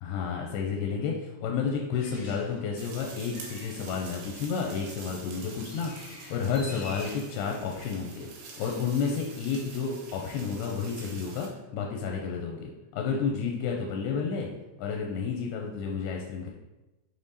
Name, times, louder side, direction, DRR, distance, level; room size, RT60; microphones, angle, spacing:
voice 1, 0.0-14.5 14.8-16.5, left 6 dB, 90° left, 0 dB, 2.7 m, -31 dB
Bird, 1.9-8.4, left 1 dB, 65° left, 1.4 m, -49 dB
sound 1, 2.8-11.5, right 4 dB, 75° right, 2.7 m, -46 dB
6.4 x 3.7 x 4.0 m, 1.0 s
omnidirectional pair, 4.6 m